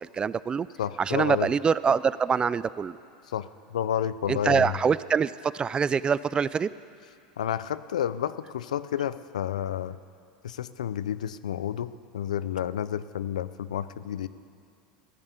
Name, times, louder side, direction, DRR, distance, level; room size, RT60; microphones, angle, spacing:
voice 1, 0.0-0.7 1.0-3.0 4.3-6.7, right 6 dB, 25° right, 18 dB, 0.4 m, -25 dB
voice 2, 0.8-1.5 3.3-4.7 7.4-10.0 10.4-14.3, left 10 dB, 90° left, 15 dB, 0.5 m, -30 dB
15.0 x 10.5 x 8.2 m, 2.4 s
hypercardioid pair, 100°, 4 cm